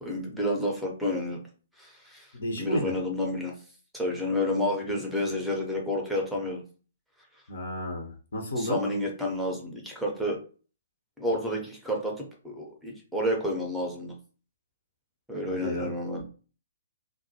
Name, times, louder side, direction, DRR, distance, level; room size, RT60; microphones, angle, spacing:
voice 1, 0.0-1.4 1.8-2.3 2.6-3.5 3.9-6.6 8.6-10.4 11.2-14.1 15.3-16.2, left 1 dB, ahead, -1 dB, 0.6 m, -30 dB
voice 2, 2.3-2.9 7.5-8.8 15.5-15.9, left 1 dB, 60° left, 1 dB, 0.6 m, -32 dB
2.2 x 2.1 x 2.7 m, 0.37 s
figure-of-eight pair, 120°, 0 cm